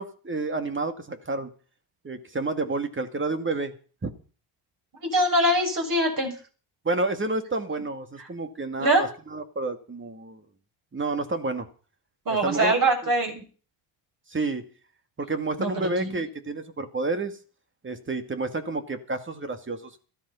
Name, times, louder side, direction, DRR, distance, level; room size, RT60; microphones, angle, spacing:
voice 1, 0.0-1.5 2.0-3.7 4.0-4.1 6.8-10.4 10.9-11.7 12.4-12.7 13.0-13.1 14.3-14.7 15.2-17.4 17.8-20.0, right 3 dB, 25° right, 8 dB, 2.3 m, -30 dB
voice 2, 5.0-6.3 8.8-9.0 12.3-13.4 15.6-16.2, right 1 dB, 40° right, 2 dB, 7.3 m, -23 dB
14.0 x 12.5 x 5.8 m, 0.40 s
supercardioid pair, 80°, 49 cm